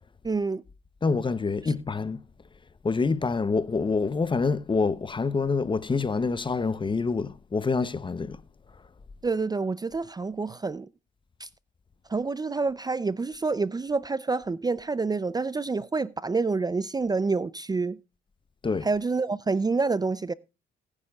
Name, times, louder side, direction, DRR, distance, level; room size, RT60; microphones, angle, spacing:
voice 1, 0.2-0.6 9.2-10.9 11.4-11.5 12.1-18.0 18.8-20.3, right 4 dB, 20° right, 0.5 m, -27 dB
voice 2, 1.0-2.3 2.8-8.4 18.6-18.9, left 4 dB, 25° left, 0.7 m, -26 dB
19.0 x 9.8 x 2.3 m
cardioid pair, 90°, 20 cm